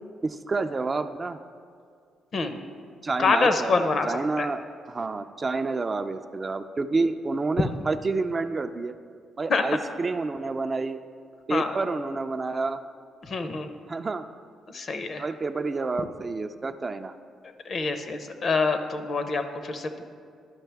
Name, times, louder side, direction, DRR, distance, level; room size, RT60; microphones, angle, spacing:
voice 1, 0.2-1.4 3.0-4.6 4.9-8.9 9.4-11.0 11.5-12.8 13.9-14.2 15.2-17.1, right 3 dB, 30° right, 9 dB, 0.3 m, -29 dB
voice 2, 3.2-4.5 9.5-9.6 11.5-11.8 13.2-13.7 14.7-15.2 17.6-20.0, left 4 dB, 50° left, 8 dB, 0.7 m, -26 dB
11.5 x 5.6 x 3.4 m, 2.3 s
cardioid pair, 90°, 0 cm